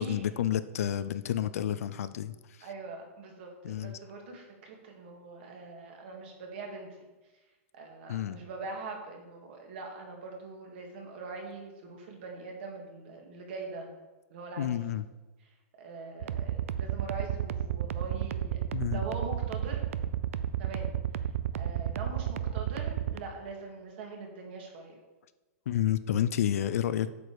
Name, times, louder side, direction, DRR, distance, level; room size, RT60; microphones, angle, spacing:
voice 1, 0.0-2.7 3.6-4.0 8.1-8.4 14.6-15.0 18.7-19.0 22.5-22.6 25.7-27.1, left 10 dB, 75° left, 14 dB, 0.5 m, -30 dB
voice 2, 2.6-7.1 7.7-13.9 14.3-14.8 15.4-19.8 20.6-20.9 21.5-25.0, right 3 dB, 45° right, 1 dB, 2.0 m, -42 dB
sound 1, 16.2-23.2, right 11 dB, 65° right, 0.5 m, -31 dB
8.0 x 7.0 x 4.8 m, 1.1 s
supercardioid pair, 170°, 8 cm